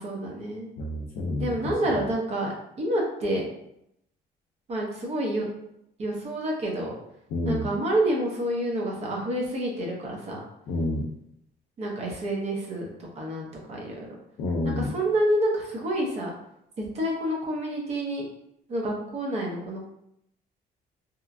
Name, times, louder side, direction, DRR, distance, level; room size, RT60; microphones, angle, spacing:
voice 1, 0.0-0.7 1.4-2.5 2.8-3.5 4.7-5.5 6.0-6.9 7.4-10.4 11.8-14.1 14.6-16.3 16.8-18.2 18.7-19.9, right 1 dB, 40° right, -1 dB, 0.7 m, -28 dB
voice 2, 0.8-2.0 7.3-7.7 10.7-11.0 14.4-14.9, left 2 dB, 70° left, -4 dB, 0.5 m, -29 dB
2.9 x 2.3 x 2.4 m, 0.77 s
cardioid pair, 165°, 17 cm